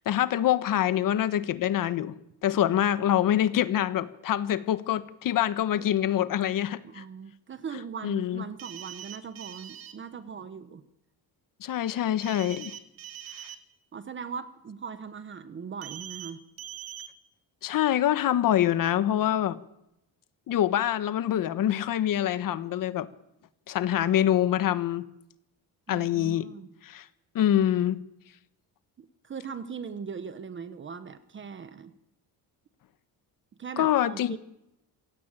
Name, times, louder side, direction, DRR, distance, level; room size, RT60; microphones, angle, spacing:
voice 1, 0.0-2.1 2.4-7.0 8.0-8.4 11.6-12.8 13.4-13.5 17.6-19.6 20.5-23.1 23.7-25.1 25.9-26.5 26.8-27.1 27.3-28.0 33.8-34.4, left 11 dB, 55° left, 13 dB, 1.3 m, -25 dB
voice 2, 6.8-10.8 13.9-16.4 25.9-26.7 29.0-31.9 33.6-34.4, right 6 dB, 30° right, 12 dB, 1.2 m, -40 dB
sound 1, 8.6-9.9 12.2-13.6 15.8-16.3 16.6-17.1, right 10 dB, 65° right, 3.0 m, -42 dB
27.0 x 16.5 x 8.9 m, 0.84 s
cardioid pair, 165°, 38 cm